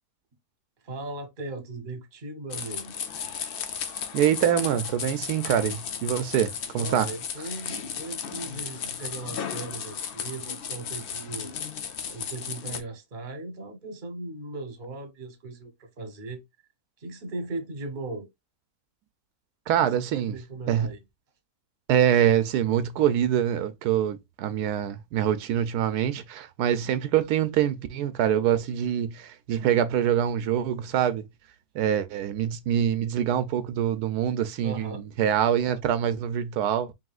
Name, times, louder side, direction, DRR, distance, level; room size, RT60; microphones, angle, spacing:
voice 1, 0.8-2.9 6.8-11.5 12.0-16.4 17.0-18.3 19.8-21.0 34.6-35.0, right 2 dB, 35° right, 1.0 m, -38 dB
sound 1, 2.5-12.8, left 7 dB, 75° left, 0.5 m, -35 dB
voice 2, 4.1-7.1 19.7-20.3 20.7-20.9 21.9-31.2 31.7-36.9, right 10 dB, 90° right, 1.1 m, -25 dB
5.4 x 2.9 x 2.4 m
omnidirectional pair, 1.7 m